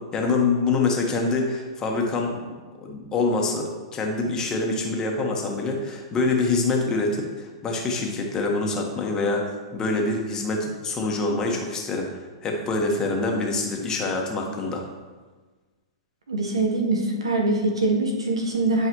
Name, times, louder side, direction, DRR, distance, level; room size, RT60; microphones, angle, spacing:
voice 1, 0.0-2.4 2.8-9.5 9.7-14.8, left 3 dB, 25° left, 1 dB, 1.4 m, -25 dB
voice 2, 16.3-18.9, right 2 dB, 80° right, 1 dB, 1.2 m, -23 dB
10.5 x 4.8 x 3.1 m, 1.3 s
hypercardioid pair, 110°, 3 cm